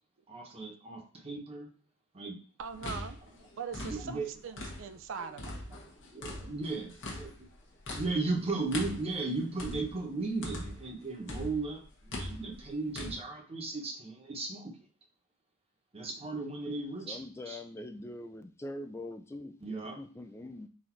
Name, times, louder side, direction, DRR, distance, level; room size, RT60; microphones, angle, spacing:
voice 1, 0.3-1.7 2.1-2.4 3.8-4.3 5.2-5.3 6.1-7.5 8.0-14.7 15.9-17.6 19.6-20.0, right 3 dB, 30° right, 1 dB, 0.9 m, -36 dB
sound 1, 2.6-5.1 5.4-11.0 11.3-13.2, left 1 dB, 60° left, 1.0 m, -41 dB
voice 2, 2.6-3.2 3.6-5.6, right 6 dB, 60° right, 10 dB, 0.4 m, -41 dB
voice 3, 17.0-19.7 20.0-20.7, left 1 dB, 10° left, 6 dB, 0.4 m, -43 dB
4.1 x 2.5 x 4.4 m, 0.39 s
head